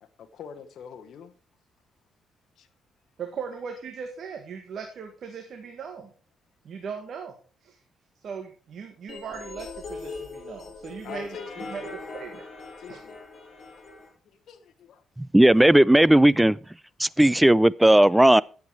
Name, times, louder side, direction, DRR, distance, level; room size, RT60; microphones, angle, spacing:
voice 1, 0.0-1.3 2.6-2.7 11.0-12.0 12.8-13.2 14.3-15.0, left 7 dB, 65° left, 1.2 m, -44 dB
voice 2, 3.2-6.1 6.6-7.3 7.6-7.8 8.2-11.4 11.7-11.9 12.1-12.4 12.9-13.0, right 6 dB, 60° right, 1.7 m, -38 dB
sound 1, 9.1-14.1, left 3 dB, 45° left, 6.6 m, -40 dB
voice 3, 15.2-16.6 17.0-18.4, right 1 dB, 5° right, 0.4 m, -16 dB
10.5 x 8.1 x 4.8 m
cardioid pair, 90°, 0 cm